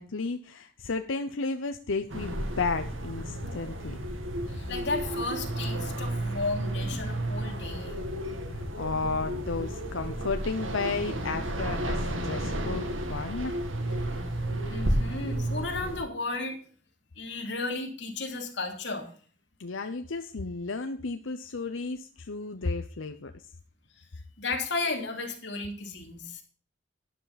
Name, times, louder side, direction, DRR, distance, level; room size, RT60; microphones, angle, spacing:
voice 1, 0.0-4.0 8.8-13.6 19.6-23.3, left 4 dB, 85° left, 8 dB, 0.8 m, -33 dB
sound 1, 2.1-16.0, right 1 dB, 85° right, 2.3 m, -32 dB
voice 2, 4.5-8.0 14.6-16.6 17.2-19.1 24.0-24.1 24.4-26.4, left 3 dB, 60° left, 3 dB, 3.0 m, -34 dB
12.0 x 10.0 x 4.1 m, 0.43 s
head